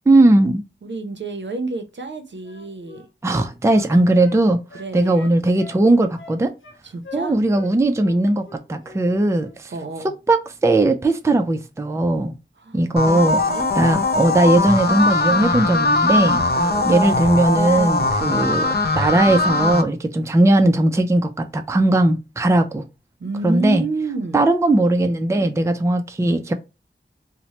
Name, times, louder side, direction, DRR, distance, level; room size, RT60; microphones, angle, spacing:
voice 1, 0.1-0.6 3.2-4.6 4.9-6.5 7.1-9.7 10.3-12.4 12.7-13.4 13.8-16.4 16.9-18.7 19.0-22.8 23.4-23.8 24.3-26.5, right 2 dB, 15° right, 0.4 m, -18 dB
voice 2, 0.8-3.1 3.9-4.0 4.7-5.4 6.8-7.4 9.7-10.1 12.6-13.7 16.5-17.0 23.2-24.4, right 3 dB, 65° right, 0.6 m, -30 dB
Wind instrument woodwind instrument, 2.4-4.4 4.7-5.8 6.2-6.8 7.0-7.7 8.0-8.2 8.4-9.1 9.3-9.6, left 4 dB, 90° left, 0.7 m, -41 dB
sound 1, 13.0-19.8, left 2 dB, 55° left, 0.5 m, -20 dB
3.0 x 2.1 x 2.7 m
wide cardioid pair, 60°, 20 cm